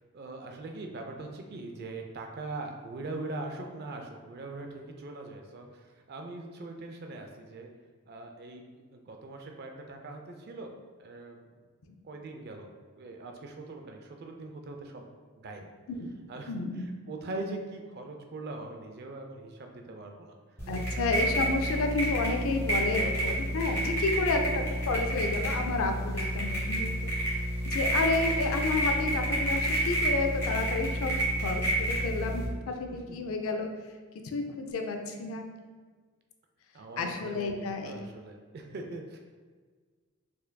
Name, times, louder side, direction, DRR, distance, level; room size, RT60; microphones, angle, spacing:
voice 1, 0.1-7.7 8.1-10.7 11.0-11.4 12.0-12.7 13.0-15.0 15.4-15.6 16.3-16.5 17.1-20.4 20.9-21.4 36.7-39.2, right 2 dB, 45° right, 3 dB, 0.3 m, -41 dB
voice 2, 16.5-16.9 20.7-27.1 27.7-33.7 34.2-35.5 37.0-38.0, left 3 dB, 70° left, 4 dB, 0.4 m, -31 dB
sound 1, 20.6-32.5, right 1 dB, 10° left, 0.7 m, -29 dB
4.3 x 2.6 x 2.2 m, 1.5 s
head